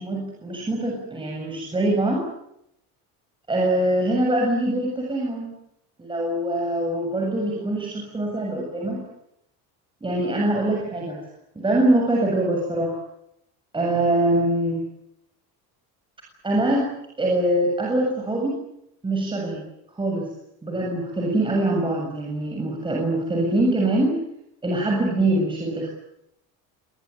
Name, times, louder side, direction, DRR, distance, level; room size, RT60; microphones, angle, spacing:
voice 1, 0.0-2.2 3.5-5.5 6.0-9.0 10.0-11.2 11.6-12.9 13.7-14.8 16.4-16.9 17.2-18.6 19.0-19.6 20.0-20.3 20.6-24.2 24.6-25.9, right 1 dB, 15° right, -1 dB, 7.5 m, -23 dB
26.0 x 21.5 x 9.3 m, 0.79 s
cardioid pair, 135°, 35 cm